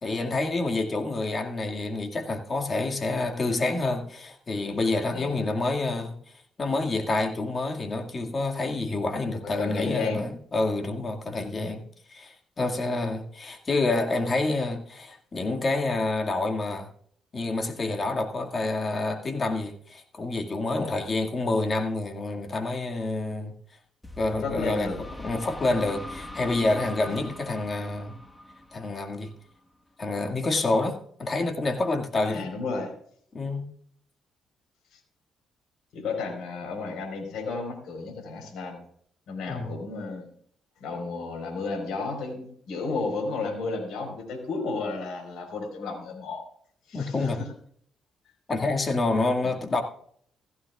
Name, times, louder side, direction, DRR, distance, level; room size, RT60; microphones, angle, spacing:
voice 1, 0.0-6.2 6.6-11.8 12.1-16.9 17.3-23.5 24.2-24.9 25.2-28.2 28.7-29.3 30.0-32.5 33.3-33.7 39.5-39.7 46.9-47.4 48.5-49.8, left 2 dB, 35° left, 2.0 m, -28 dB
voice 2, 9.4-10.3 20.7-21.0 24.4-25.0 27.1-27.3 32.3-32.9 35.9-38.8 39.3-40.3 40.8-46.4 46.9-47.5 48.6-48.7 49.1-49.5, left 4 dB, 80° left, 4.4 m, -33 dB
sound 1, 24.0-29.7, left 1 dB, 15° left, 1.4 m, -41 dB
16.5 x 14.5 x 2.4 m
cardioid pair, 90°, 0 cm